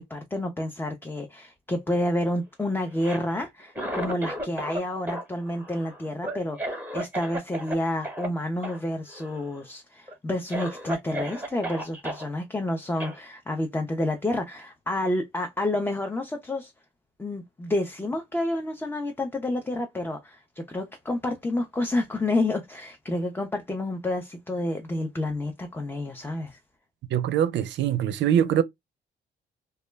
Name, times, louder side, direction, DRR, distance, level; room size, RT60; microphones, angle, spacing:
voice 1, 0.0-16.7 17.2-26.6, left 1 dB, 10° left, 0.4 m, -29 dB
Cough, 2.9-4.8 5.1-7.8 8.0-8.3 8.6-8.8 9.1-9.6 10.1-10.2 10.5-12.2 13.0-13.2, right 1 dB, 10° right, 0.9 m, -34 dB
voice 2, 27.1-28.6, right 9 dB, 65° right, 0.4 m, -23 dB
2.2 x 2.1 x 3.2 m
cardioid pair, 90°, 20 cm